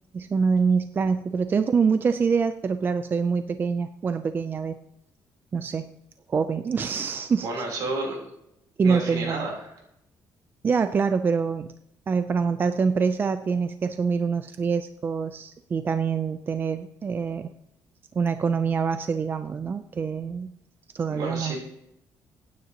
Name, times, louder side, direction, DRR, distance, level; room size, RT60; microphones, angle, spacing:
voice 1, 0.1-4.7 5.5-5.8 6.3-7.5 8.8-9.5 10.6-11.7 12.1-17.5 18.2-20.5 20.9-21.6, right 5 dB, 30° right, 10 dB, 0.5 m, -25 dB
voice 2, 7.4-8.2 8.8-9.7 21.1-21.6, right 2 dB, 75° right, 0 dB, 3.6 m, -31 dB
23.0 x 9.5 x 2.9 m, 0.82 s
cardioid pair, 135°, 7 cm